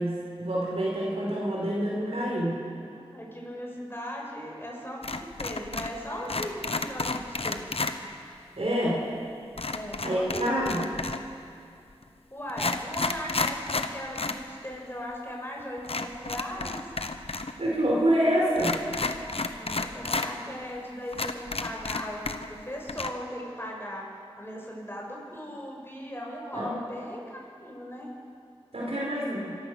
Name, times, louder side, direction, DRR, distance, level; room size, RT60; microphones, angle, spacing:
voice 1, 0.0-2.6 8.6-9.0 10.0-10.8 17.6-18.8 26.5-26.7 28.7-29.6, equal, 75° right, -4 dB, 5.0 m, -27 dB
voice 2, 2.9-7.7 9.7-10.8 12.3-16.9 19.5-24.1 24.4-28.1, equal, 20° left, -2 dB, 6.3 m, -38 dB
sound 1, 5.0-6.0 6.2-8.0 9.6-11.3 12.0-12.1 12.5-14.4 14.7-14.8 15.8-17.5 17.8-17.9 18.5-20.3 20.7-20.8 21.1-22.6 22.9-23.1, left 3 dB, 70° left, 1.0 m, -31 dB
26.0 x 15.0 x 6.5 m, 2.4 s
wide cardioid pair, 40°, 10 cm